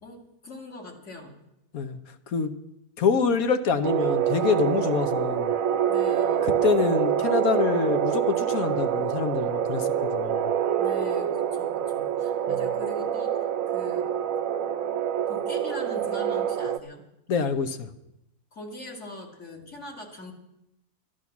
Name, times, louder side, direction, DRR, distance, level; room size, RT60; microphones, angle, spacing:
voice 1, 0.0-1.4 5.9-6.5 10.8-14.1 15.3-17.0 18.5-20.3, left 2 dB, 50° left, 1 dB, 2.4 m, -42 dB
voice 2, 3.0-5.5 6.4-10.5 12.5-12.6 17.3-17.9, left 5 dB, 70° left, 9 dB, 1.3 m, -26 dB
sound 1, 3.8-16.8, right 9 dB, 65° right, 1.0 m, -26 dB
12.0 x 11.5 x 7.1 m, 0.85 s
omnidirectional pair, 1.6 m